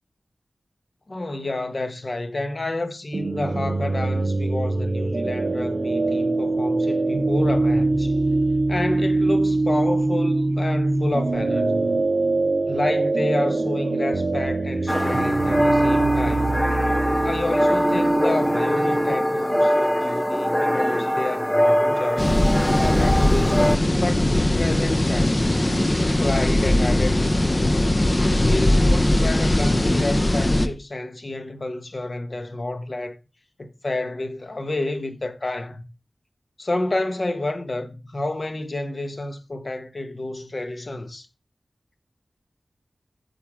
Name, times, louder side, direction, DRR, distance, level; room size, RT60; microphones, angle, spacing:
voice 1, 1.1-8.2 8.7-12.0 12.7-16.6 17.2-22.3 22.8-25.7 26.2-27.7 28.2-33.1 33.6-35.8 36.6-41.3, left 2 dB, 50° left, 1.4 m, -29 dB
sound 1, 3.1-19.1, right 2 dB, 55° right, 0.7 m, -23 dB
sound 2, 14.9-23.8, equal, 10° left, 0.4 m, -23 dB
sound 3, 22.2-30.7, left 1 dB, 30° left, 1.0 m, -20 dB
9.3 x 7.0 x 3.7 m
wide cardioid pair, 60°, 0 cm